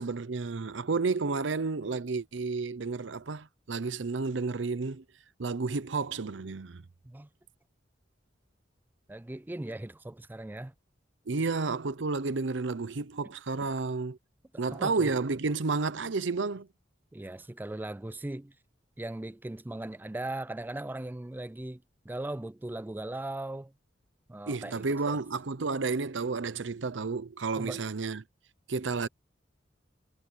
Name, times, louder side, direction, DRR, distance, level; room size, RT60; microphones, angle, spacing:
voice 1, 0.0-5.0 5.4-6.8 11.3-14.2 14.6-16.7 24.5-28.2 28.7-29.1, right 4 dB, 75° right, 0.7 m, -31 dB
voice 2, 9.1-10.7 13.6-13.7 14.7-15.1 17.1-18.5 19.0-23.7 24.3-25.2 27.5-27.8, right 1 dB, 10° right, 0.4 m, -38 dB
head